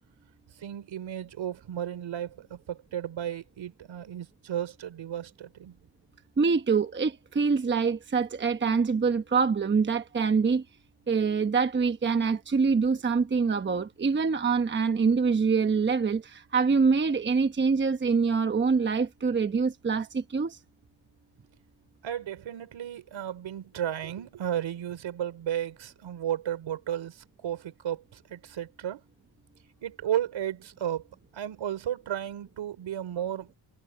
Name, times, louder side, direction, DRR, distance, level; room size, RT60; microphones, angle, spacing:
voice 1, 0.6-5.8 22.0-29.0 29.8-31.0 31.3-33.5, right 10 dB, 70° right, 4.5 m, -34 dB
voice 2, 6.4-10.6 11.1-20.6, right 5 dB, 25° right, 1.0 m, -25 dB
cardioid pair, 130°, 48 cm